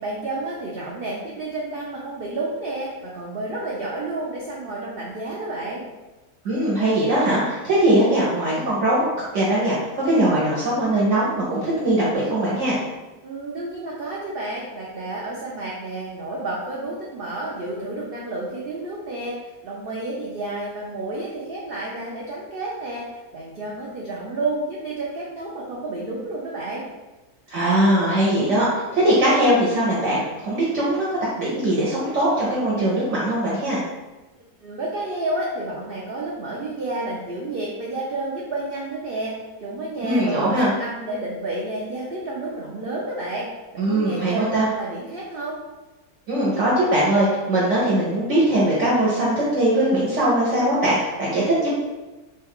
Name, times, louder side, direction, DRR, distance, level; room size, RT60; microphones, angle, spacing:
voice 1, 0.0-5.8 13.2-19.3 19.6-23.0 23.3-26.9 34.6-39.3 39.6-43.5 43.7-44.4 44.7-45.6, right 2 dB, 80° right, -4 dB, 0.5 m, -30 dB
voice 2, 6.4-9.0 9.3-12.8 27.5-33.8 40.0-40.7 43.8-44.7 46.3-51.7, right 1 dB, 60° right, -7 dB, 1.0 m, -21 dB
3.1 x 2.3 x 3.5 m, 1.1 s
omnidirectional pair, 1.6 m